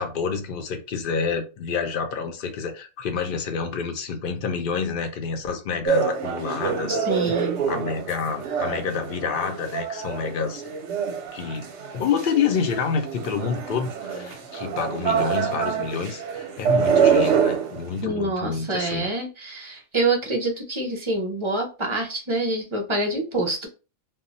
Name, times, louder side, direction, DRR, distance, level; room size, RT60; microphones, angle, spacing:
voice 1, 0.0-7.0 7.7-10.6 11.3-19.1, left 5 dB, 70° left, 0.5 m, -28 dB
funduk washing cooking and trading medina marrakesh, 5.9-17.8, right 6 dB, 65° right, 0.8 m, -26 dB
voice 2, 7.0-7.6 18.0-23.7, right 2 dB, 35° right, 0.5 m, -26 dB
2.2 x 2.1 x 3.8 m
omnidirectional pair, 1.5 m